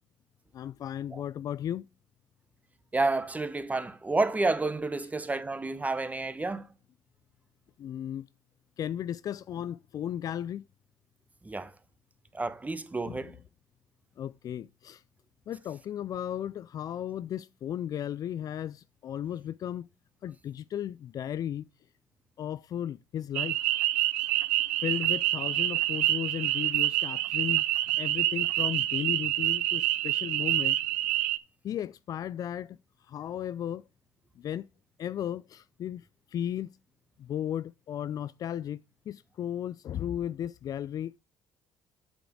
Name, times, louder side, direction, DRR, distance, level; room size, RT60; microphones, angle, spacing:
voice 1, 0.5-1.9 7.8-8.2 8.8-10.6 13.1-13.3 14.2-15.0 15.5-19.9 20.2-21.7 22.4-23.6 24.8-27.6 28.0-30.8 31.6-32.8 33.1-33.8 34.4-34.7 35.0-36.0 36.3-36.7 37.2-38.8 39.1-41.2, left 10 dB, 50° left, 0.4 m, -35 dB
voice 2, 2.9-6.7 11.4-11.7 12.3-13.4, right 3 dB, 20° right, 1.1 m, -30 dB
sound 1, 23.3-31.4, right 15 dB, 85° right, 0.5 m, -27 dB
8.1 x 6.1 x 4.7 m
hypercardioid pair, 60°, 8 cm